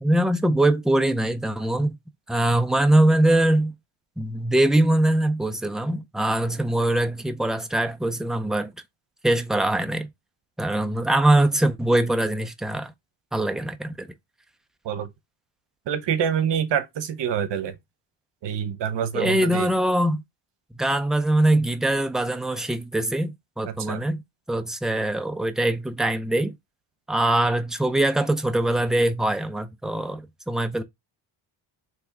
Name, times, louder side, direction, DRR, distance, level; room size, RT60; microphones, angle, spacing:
voice 1, 0.0-2.0 2.3-3.7 4.2-8.7 9.2-10.1 10.6-12.9 13.3-14.1 19.1-20.2 20.8-24.2 24.5-26.5 27.1-30.8, right 1 dB, ahead, 0.3 m, -22 dB
voice 2, 15.9-17.8 18.4-19.7 23.8-24.0, right 8 dB, 65° right, 0.9 m, -26 dB
3.4 x 3.1 x 4.6 m
cardioid pair, 115°, 47 cm